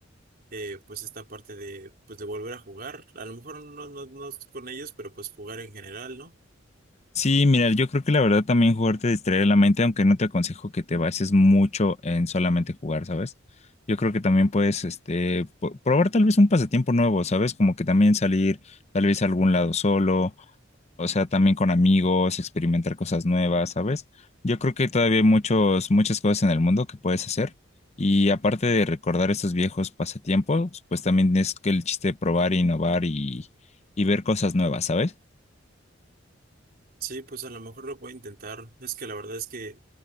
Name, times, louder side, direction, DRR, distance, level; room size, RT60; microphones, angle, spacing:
voice 1, 0.5-6.3 37.0-39.8, right 3 dB, 50° right, 3.6 m, -38 dB
voice 2, 7.1-13.3 13.9-20.3 21.0-24.0 24.4-27.5 28.0-33.5 34.0-35.1, left 2 dB, 35° left, 0.7 m, -22 dB
head